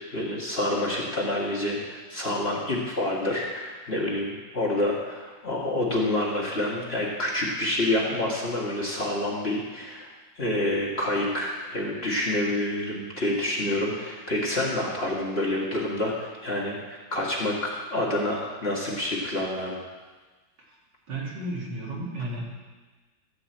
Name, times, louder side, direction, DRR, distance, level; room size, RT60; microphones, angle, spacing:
voice 1, 0.1-10.1 10.4-19.8, left 1 dB, 35° left, -3 dB, 1.8 m, -28 dB
voice 2, 21.1-22.4, right 1 dB, 65° right, -4 dB, 3.1 m, -33 dB
14.5 x 5.4 x 7.8 m, 1.3 s
omnidirectional pair, 2.1 m